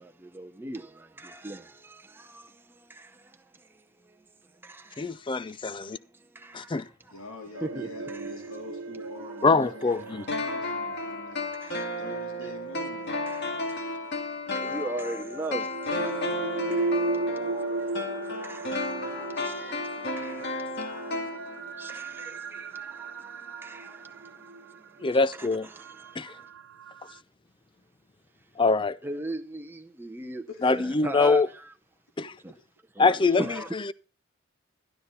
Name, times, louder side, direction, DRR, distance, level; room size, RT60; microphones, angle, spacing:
voice 1, 0.0-5.2 5.9-7.2 7.6-8.6 9.0-9.5 9.9-10.5 11.1-11.2 11.5-11.9 12.4-12.5 13.3-14.2 14.5-26.5 28.4-28.5 28.8-31.7 32.4-32.6 32.8-33.8, right 2 dB, 10° right, 0.7 m, -41 dB
voice 2, 5.0-6.0 6.5-6.9 9.4-10.2 25.0-25.7 26.2-26.3 28.6-29.0 30.6-31.5 32.2-32.3 33.0-33.4, left 4 dB, 25° left, 0.4 m, -23 dB
voice 3, 7.1-13.1 14.7-14.8 30.5-30.8 32.2-32.3, left 2 dB, 85° left, 3.9 m, -45 dB
sound 1, 7.6-13.6 14.7-27.2, right 3 dB, 65° right, 0.8 m, -36 dB
sound 2, 10.3-21.9 22.2-22.3, left 2 dB, 55° left, 2.2 m, -33 dB
12.0 x 11.0 x 4.1 m
head